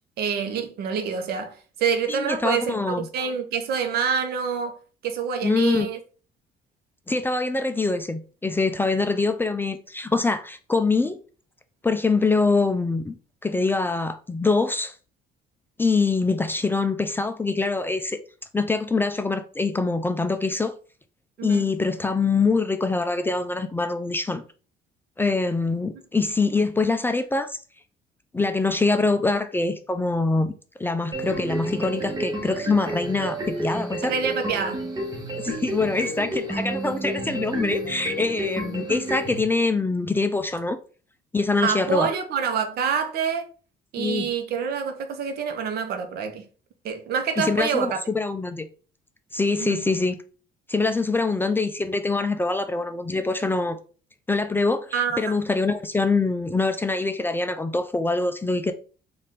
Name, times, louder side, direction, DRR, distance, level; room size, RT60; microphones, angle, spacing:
voice 1, 0.2-4.8 5.0-6.0 21.4-21.6 34.0-34.9 41.6-43.5 43.9-46.5 46.8-48.0 49.6-49.8 54.9-55.2, right 6 dB, 70° right, 0.8 m, -26 dB
voice 2, 2.1-3.1 5.4-5.9 7.1-11.2 11.8-13.2 13.4-14.9 15.8-18.2 18.5-20.7 21.4-24.4 25.2-27.6 28.3-30.5 30.8-34.1 35.4-40.8 41.3-42.1 44.0-44.3 47.4-48.7 49.3-50.2 50.7-53.8 54.3-58.7, left 3 dB, 10° left, 0.4 m, -24 dB
sound 1, 31.1-39.4, right 1 dB, 25° right, 1.2 m, -30 dB
4.1 x 2.5 x 3.6 m
cardioid pair, 110°, 17 cm